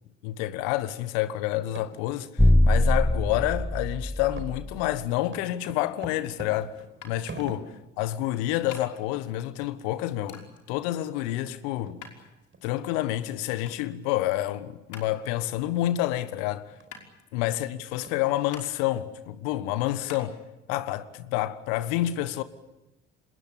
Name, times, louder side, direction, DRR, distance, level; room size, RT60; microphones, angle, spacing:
voice 1, 0.2-12.0 12.6-16.8 17.3-20.4 20.7-22.4, left 14 dB, 70° left, 1.5 m, -29 dB
sound 1, 1.6-2.2 2.6-2.7 3.3-3.5 3.8-4.0 4.3-7.9 8.4-8.5 8.7-8.9 9.1-9.3 9.6-9.7 10.2-10.3 10.7-10.9 11.3-11.4 11.9-12.0 12.5-12.6 13.1-13.2 13.9-14.1 14.5-14.7 15.1-15.2 15.6-15.8 16.2-16.3 16.8-16.9 17.5-17.6 18.0-18.6, right 3 dB, 30° right, 4.8 m, -45 dB
sound 2, 2.4-4.8, left 1 dB, 5° left, 1.0 m, -22 dB
sound 3, 7.0-20.3, left 5 dB, 50° left, 5.6 m, -49 dB
26.5 x 20.5 x 8.6 m
figure-of-eight pair, 50°, 38 cm